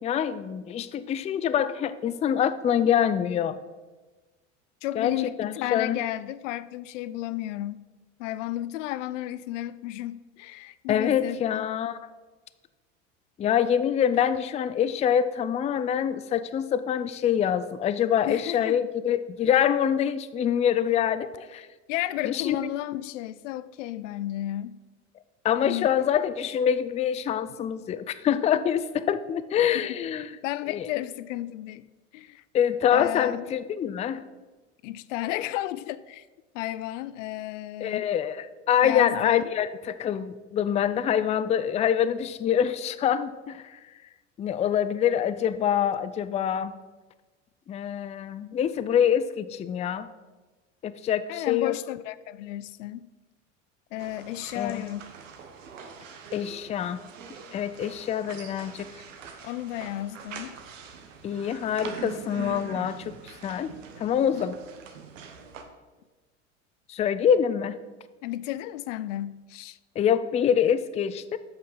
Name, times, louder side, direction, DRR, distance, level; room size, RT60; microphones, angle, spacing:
voice 1, 0.0-3.6 5.0-5.1 5.4-6.0 10.9-12.0 13.4-21.7 22.2-22.6 25.4-30.3 30.7-30.9 32.5-34.2 37.8-43.8 44.4-46.7 47.7-50.1 50.8-51.7 54.6-54.9 56.3-57.0 57.5-58.9 61.2-64.6 66.9-67.8 70.0-71.4, left 9 dB, 20° left, 0.3 m, -25 dB
voice 2, 4.8-7.8 8.2-11.7 18.3-18.8 21.9-24.8 25.6-25.9 29.7-30.0 30.4-31.8 32.1-32.4 32.9-33.4 34.8-36.3 36.5-38.0 38.8-39.5 51.3-53.1 53.9-55.0 59.4-60.6 64.2-64.5 68.2-69.8, left 15 dB, 75° left, 0.5 m, -33 dB
sound 1, 54.0-65.6, right 6 dB, 85° right, 1.1 m, -43 dB
7.8 x 5.7 x 5.6 m
hypercardioid pair, 85°, 37 cm